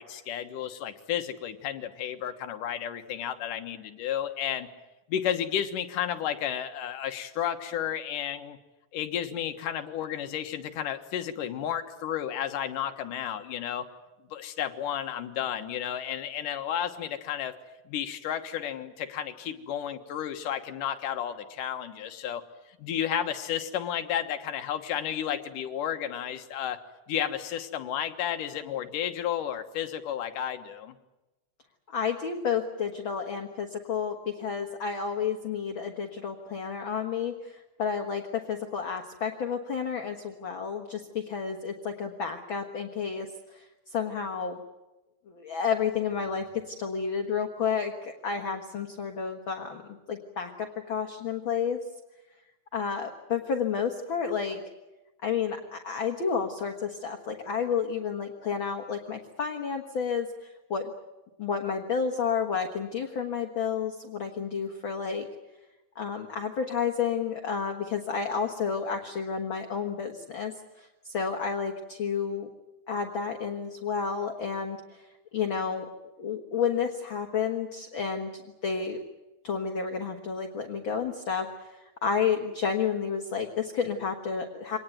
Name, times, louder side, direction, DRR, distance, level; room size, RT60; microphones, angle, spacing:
voice 1, 0.0-4.7 5.1-8.6 8.9-13.9 14.3-17.5 17.9-22.4 22.8-26.8 27.1-31.0, left 10 dB, 90° left, 7 dB, 2.9 m, -32 dB
voice 2, 31.9-44.6 45.3-49.8 50.1-51.8 52.7-54.6 55.2-60.9 61.4-65.3 66.0-70.5 70.8-72.5 72.9-75.0 75.3-75.9 76.2-78.3 78.6-79.0 79.4-84.8, left 6 dB, 45° left, 3 dB, 1.9 m, -31 dB
25.0 x 19.5 x 9.4 m, 1.0 s
omnidirectional pair, 3.6 m